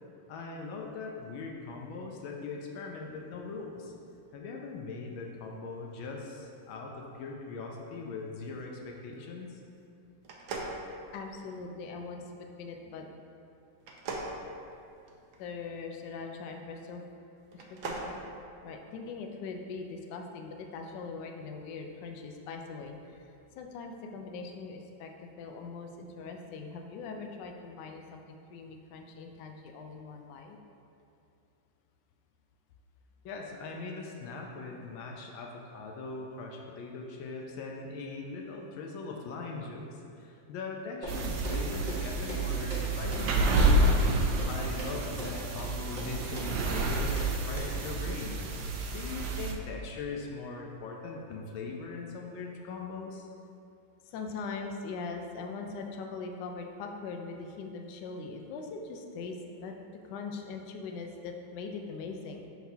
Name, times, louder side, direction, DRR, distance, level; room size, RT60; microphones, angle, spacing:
voice 1, 0.3-3.9 4.3-9.6 33.2-44.0 44.5-48.4 48.9-53.3, left 4 dB, 90° left, 0 dB, 1.5 m, -40 dB
sound 1, 10.2-11.6 13.8-15.4 17.4-18.1, right 3 dB, 85° right, 1.6 m, -39 dB
voice 2, 11.1-12.3 12.6-13.1 15.4-17.0 17.5-18.2 18.6-23.3 23.6-30.6 54.0-59.4 59.6-59.7 60.0-62.5, left 4 dB, 70° left, 3 dB, 1.1 m, -41 dB
sound 2, 41.0-41.2 41.4-41.6 41.9-42.0 42.3-42.4 42.7-42.8 43.1-43.2 43.6-43.7 44.0-44.1 44.4-44.5 44.8-44.9 45.2-45.3 45.6-45.7 46.0-46.1 46.3-46.5 46.8-46.9 47.2-47.3 47.6-47.7, right 1 dB, 30° right, 1.0 m, -40 dB
sound 3, 41.1-49.5, right 2 dB, 70° right, 1.0 m, -29 dB
11.0 x 4.0 x 2.7 m, 2.6 s
omnidirectional pair, 2.2 m